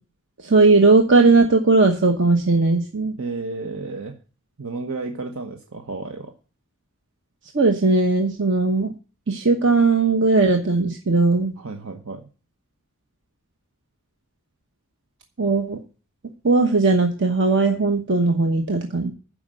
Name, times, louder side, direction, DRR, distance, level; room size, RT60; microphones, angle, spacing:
voice 1, 0.4-3.1 7.5-8.9 9.3-11.5 15.4-15.8 16.4-19.1, right 3 dB, 60° right, 4 dB, 1.1 m, -18 dB
voice 2, 3.2-4.1 4.6-6.3 11.6-12.3, right 3 dB, 80° right, 4 dB, 1.3 m, -32 dB
13.0 x 5.2 x 7.6 m, 0.36 s
head